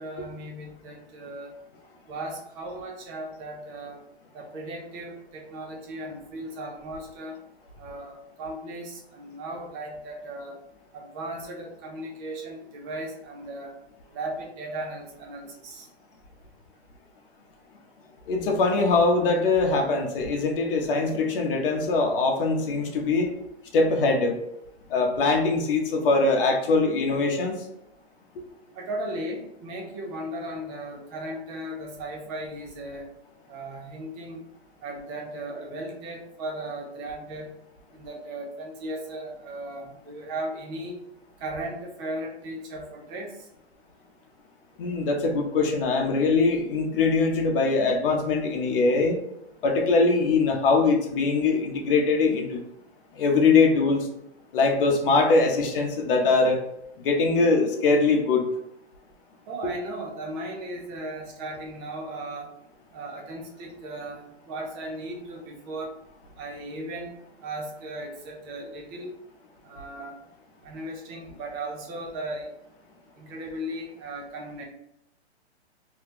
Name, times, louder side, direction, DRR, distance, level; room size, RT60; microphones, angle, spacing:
voice 1, 0.0-1.5 2.1-4.0 4.3-7.4 7.8-10.6 10.9-13.7 14.1-15.9 28.8-33.1 33.5-34.4 34.8-37.5 38.0-41.0 41.4-43.3 59.5-62.5 62.9-65.9 66.4-67.1 67.4-69.1 69.6-70.2 70.6-72.5 73.2-74.6, right 1 dB, 20° right, 1 dB, 0.4 m, -36 dB
voice 2, 18.3-23.3 23.7-24.4 24.9-27.6 44.8-49.2 49.6-52.6 53.2-54.1 54.5-56.6 57.0-58.4 59.6-59.7, left 3 dB, 55° left, 2 dB, 0.8 m, -22 dB
2.8 x 2.3 x 3.6 m, 0.81 s
hypercardioid pair, 140°, 33 cm